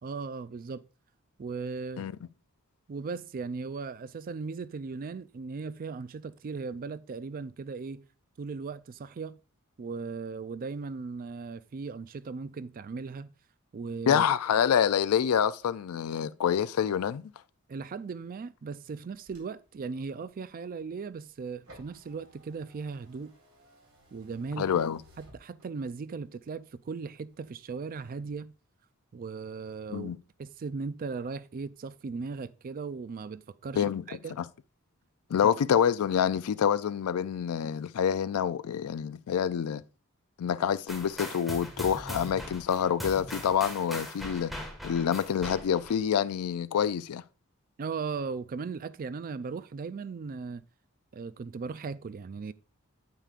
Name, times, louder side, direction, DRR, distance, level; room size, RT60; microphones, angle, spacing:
voice 1, 0.0-0.8 1.4-2.1 2.9-8.1 8.4-9.4 9.8-13.3 13.7-14.2 17.7-23.4 24.1-24.7 25.2-28.5 29.1-30.1 30.4-34.4 35.4-35.5 47.8-50.6 51.1-52.5, right 4 dB, 40° right, 0.4 m, -37 dB
voice 2, 14.1-17.2 24.6-25.0 29.9-30.2 33.8-34.0 34.4-34.5 35.3-39.8 40.4-44.5 44.8-47.2, left 8 dB, 80° left, 0.4 m, -27 dB
sound 1, 19.0-26.0 26.5-27.5 27.8-28.3, right 1 dB, 65° right, 4.1 m, -59 dB
sound 2, 40.9-46.0, left 1 dB, ahead, 1.6 m, -40 dB
9.1 x 8.3 x 2.4 m
head